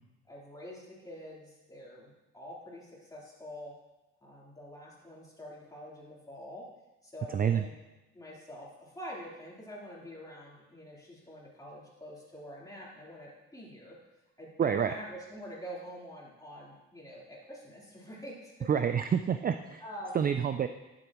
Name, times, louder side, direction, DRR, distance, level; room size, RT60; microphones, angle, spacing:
voice 1, 0.3-3.7 4.2-6.7 7.0-7.8 8.1-14.0 14.4-18.7 19.8-20.2, equal, 10° left, -6 dB, 3.6 m, -46 dB
voice 2, 7.3-7.6 14.6-14.9 18.7-19.8 20.1-20.7, right 8 dB, 30° right, 9 dB, 0.4 m, -28 dB
11.0 x 8.0 x 3.0 m, 1.0 s
cardioid pair, 90°, 30 cm